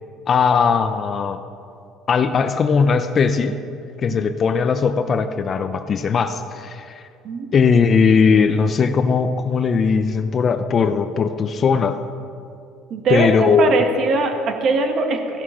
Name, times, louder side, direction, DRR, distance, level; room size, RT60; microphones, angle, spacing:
voice 1, 0.3-1.4 2.1-3.6 4.0-7.0 7.5-12.0 13.1-13.8, left 5 dB, 35° left, 10 dB, 0.7 m, -18 dB
voice 2, 12.9-15.4, right 3 dB, 50° right, 5 dB, 1.6 m, -21 dB
15.5 x 11.0 x 5.8 m, 2.5 s
cardioid pair, 130°, 0 cm